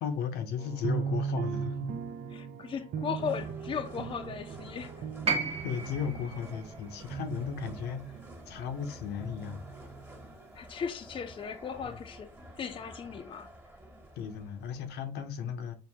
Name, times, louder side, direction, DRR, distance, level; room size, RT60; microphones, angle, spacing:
voice 1, 0.0-2.0 5.6-8.1 8.5-9.7 11.8-11.9 14.1-15.7, left 7 dB, 75° left, 0.7 m, -35 dB
sound 1, 0.6-8.6 9.2-10.3, right 6 dB, 50° right, 0.5 m, -38 dB
voice 2, 2.3-5.1 10.5-13.8, left 6 dB, 30° left, 0.5 m, -37 dB
sound 2, 3.2-15.0, equal, 15° right, 1.3 m, -50 dB
sound 3, 5.3-9.4 10.6-10.7, right 4 dB, 35° right, 0.9 m, -36 dB
4.5 x 2.6 x 3.4 m
cardioid pair, 110°, 17 cm